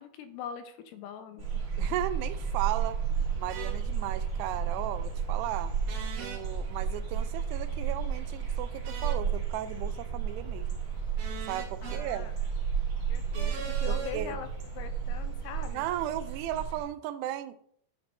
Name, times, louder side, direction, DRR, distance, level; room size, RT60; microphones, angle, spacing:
voice 1, 0.0-1.6 11.8-12.3 13.1-14.5 14.7-15.9, left 8 dB, 90° left, 8 dB, 2.8 m, -42 dB
sound 1, 1.4-16.9, right 7 dB, 45° right, 2.7 m, -32 dB
voice 2, 1.8-3.0 3.4-5.7 6.2-10.8 11.5-12.3 13.9-14.4 15.7-17.7, right 12 dB, 85° right, 12 dB, 2.6 m, -35 dB
sound 2, 3.1-16.0, left 3 dB, 70° left, 2.5 m, -51 dB
sound 3, 3.5-3.7 5.9-6.4 8.8-9.2 11.2-12.0 13.3-14.1, right 6 dB, 70° right, 3.0 m, -41 dB
9.4 x 4.4 x 4.1 m, 0.64 s
omnidirectional pair, 4.8 m